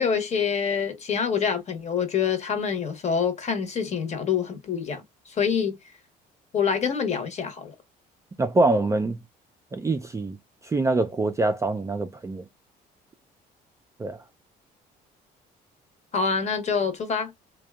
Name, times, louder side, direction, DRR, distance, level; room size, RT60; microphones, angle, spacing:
voice 1, 0.0-5.8 6.5-7.7 16.1-17.3, left 6 dB, 40° left, 0.8 m, -26 dB
voice 2, 8.4-9.2 9.7-10.4 10.6-12.4 14.0-14.2, right 2 dB, 20° right, 0.3 m, -24 dB
2.6 x 2.2 x 2.2 m
cardioid pair, 110°, 17 cm